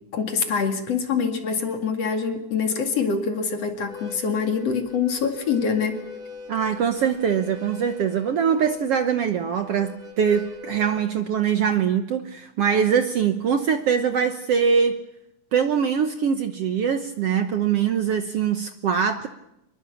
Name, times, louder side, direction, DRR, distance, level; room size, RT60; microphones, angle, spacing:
voice 1, 0.1-6.0, left 5 dB, 55° left, 5 dB, 3.1 m, -25 dB
Harmonica, 3.7-11.1, left 3 dB, 25° right, 5.1 m, -42 dB
voice 2, 6.5-15.0 15.5-19.3, right 7 dB, 65° right, 7 dB, 1.7 m, -23 dB
25.0 x 22.0 x 7.1 m, 0.84 s
omnidirectional pair, 3.7 m